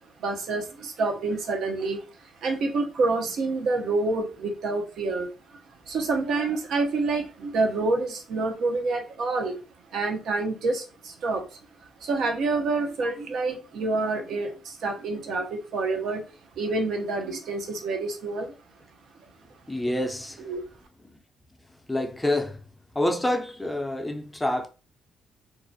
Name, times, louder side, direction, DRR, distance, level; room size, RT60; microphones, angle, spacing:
voice 1, 0.2-2.0 2.4-5.3 5.9-9.6 9.9-11.4 12.0-16.2 16.6-18.5 20.4-20.6, right 3 dB, 70° right, 0.6 m, -27 dB
voice 2, 19.7-20.5 21.1-21.2 21.9-22.6 22.9-24.7, left 1 dB, 10° left, 0.4 m, -27 dB
2.4 x 2.0 x 2.6 m
cardioid pair, 90°, 0 cm